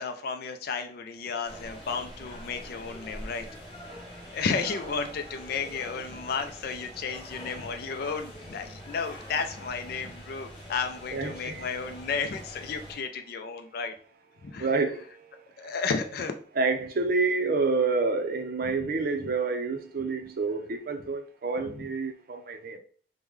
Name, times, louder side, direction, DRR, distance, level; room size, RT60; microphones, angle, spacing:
voice 1, 0.0-3.5 4.3-13.9 14.4-14.7 15.6-16.3 21.7-21.8, left 5 dB, 60° left, 0.4 m, -33 dB
sound 1, 1.5-13.0, equal, 30° left, 1.3 m, -44 dB
voice 2, 11.1-11.7 14.6-15.1 16.6-22.8, right 4 dB, 55° right, 0.5 m, -28 dB
3.6 x 2.1 x 3.1 m
head